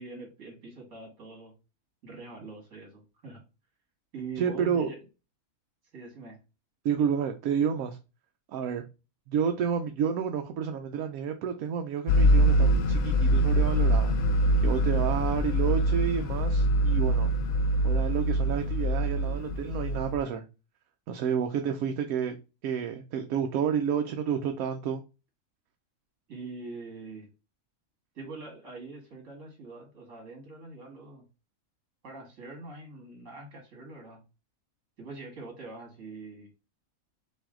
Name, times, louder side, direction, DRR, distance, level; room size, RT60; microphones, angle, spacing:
voice 1, 0.0-1.6 2.0-3.4 4.1-5.0 5.9-6.4 26.3-27.3 28.1-31.3 32.0-34.2 35.0-36.5, right 3 dB, 60° right, 2.1 m, -43 dB
voice 2, 4.4-4.9 6.8-8.0 8.5-8.8 9.3-17.3 17.8-20.4 21.1-22.3 22.6-25.0, right 7 dB, 80° right, 1.1 m, -30 dB
sound 1, 12.1-20.2, right 1 dB, 90° left, 1.1 m, -24 dB
5.3 x 2.7 x 3.7 m
omnidirectional pair, 1.5 m